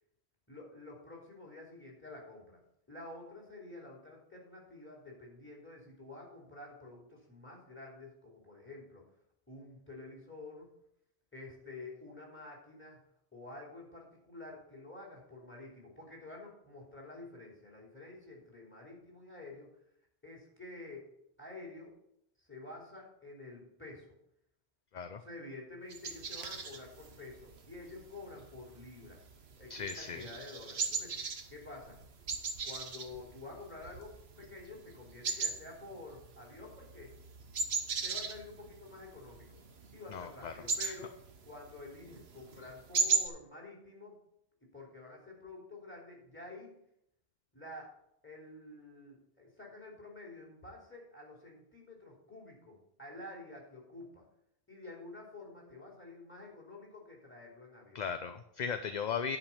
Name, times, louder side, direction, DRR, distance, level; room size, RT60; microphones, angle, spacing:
voice 1, 0.5-2.6 2.9-9.0 9.5-10.7 11.3-13.0 13.3-19.7 20.2-21.1 21.4-21.9 22.4-24.1 25.0-29.2 29.6-32.0 32.6-37.2 38.0-39.6 39.9-41.1 41.4-44.2 44.7-46.7 47.5-47.9 48.2-54.2 54.7-58.0, left 2 dB, 10° left, -2 dB, 3.2 m, -49 dB
sound 1, 25.9-43.3, right 5 dB, 85° right, 1.3 m, -39 dB
voice 2, 29.7-30.3 40.1-40.5 40.8-40.9 57.9-59.4, left 6 dB, 50° left, 9 dB, 0.6 m, -37 dB
10.5 x 5.0 x 7.2 m, 0.75 s
omnidirectional pair, 1.0 m